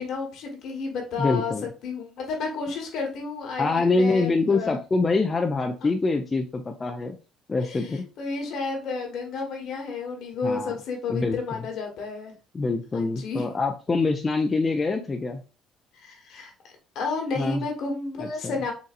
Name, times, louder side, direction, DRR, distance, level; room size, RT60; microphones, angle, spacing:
voice 1, 0.0-1.5 1.8-4.8 7.6-12.3 12.9-13.4 16.0-16.5 16.9-18.7, left 4 dB, 65° left, 2 dB, 1.2 m, -31 dB
voice 2, 1.2-1.7 3.6-7.2 7.5-8.0 10.4-10.8 11.1-11.6 12.5-15.4 17.4-17.6 18.2-18.6, left 3 dB, 20° left, 4 dB, 0.3 m, -25 dB
4.0 x 2.6 x 2.4 m, 0.34 s
cardioid pair, 120°, 0 cm